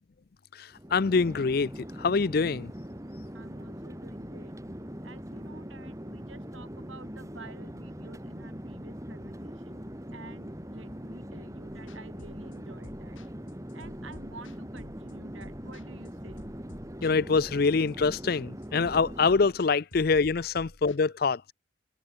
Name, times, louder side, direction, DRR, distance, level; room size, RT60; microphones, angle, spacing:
voice 1, 0.5-1.7 2.0-2.7 17.0-21.5, left 4 dB, 50° left, 0.5 m, -25 dB
Chatter / Fixed-wing aircraft airplane, 0.7-19.6, equal, 15° right, 2.5 m, -42 dB
voice 2, 3.3-4.5 5.0-9.8 10.1-13.2 13.7-16.4 20.4-20.5, right 3 dB, 80° right, 4.9 m, -50 dB
sound 1, 11.7-21.0, left 1 dB, 80° left, 4.8 m, -50 dB
open air
head